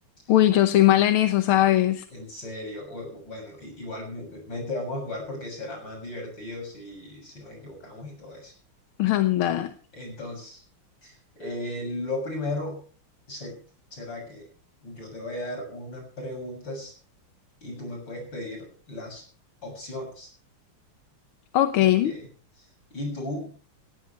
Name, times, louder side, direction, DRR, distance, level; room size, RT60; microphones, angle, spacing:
voice 1, 0.3-2.1 9.0-9.7 21.5-22.1, left 13 dB, 85° left, 8 dB, 1.8 m, -20 dB
voice 2, 2.1-8.5 9.9-10.6 11.0-12.8 13.3-13.6 13.9-14.4 14.8-16.9 17.6-19.2 19.6-20.3 21.8-22.3 22.6-23.5, left 1 dB, 60° left, 2 dB, 7.9 m, -36 dB
18.5 x 17.0 x 3.3 m, 0.40 s
omnidirectional pair, 2.3 m